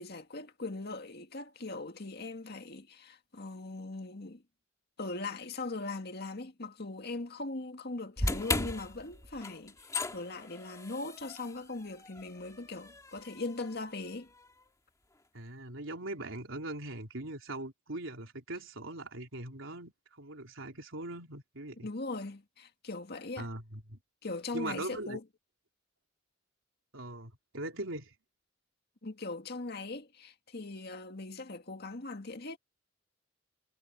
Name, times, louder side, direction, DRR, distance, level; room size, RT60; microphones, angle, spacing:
voice 1, 0.0-4.4 5.0-9.8 10.1-14.3 21.8-23.5 24.2-25.2 29.0-32.6, left 3 dB, 55° left, 2.0 m, -40 dB
sound 1, 8.2-14.4, left 2 dB, 15° left, 2.0 m, -38 dB
voice 2, 15.3-21.9 23.4-24.0 24.5-25.2 26.9-28.1, right 2 dB, 80° right, 3.7 m, -41 dB
head